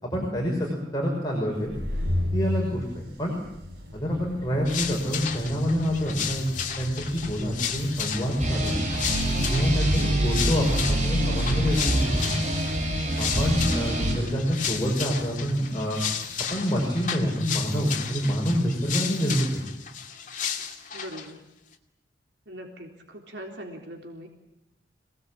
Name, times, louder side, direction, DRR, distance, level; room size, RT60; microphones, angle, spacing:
voice 1, 0.0-1.7 2.3-3.4 3.9-8.8 9.4-12.4 13.2-16.0 16.5-19.5, equal, 20° left, -1 dB, 5.9 m, -27 dB
sound 1, 1.5-18.9, left 1 dB, 65° right, 5.7 m, -36 dB
sound 2, 4.7-21.3, left 8 dB, 50° left, 2.4 m, -34 dB
sound 3, 8.4-14.1, right 1 dB, 40° right, 6.3 m, -26 dB
voice 2, 9.9-10.3 20.9-21.4 22.5-24.3, equal, 85° right, 2 dB, 3.7 m, -40 dB
27.0 x 19.0 x 8.7 m, 0.85 s
head